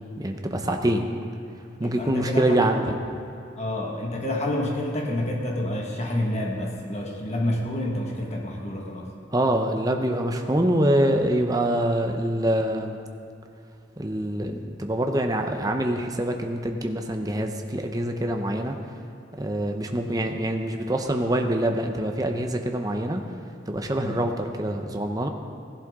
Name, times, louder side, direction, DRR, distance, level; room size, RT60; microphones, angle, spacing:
voice 1, 0.2-1.1 1.8-2.8 9.3-13.0 14.0-18.7 19.4-23.2 23.7-25.3, right 1 dB, 20° right, 4 dB, 0.7 m, -25 dB
voice 2, 1.8-2.9 3.6-9.1 24.0-24.2, left 1 dB, 35° left, -1 dB, 1.5 m, -28 dB
16.5 x 11.0 x 3.7 m, 2.7 s
head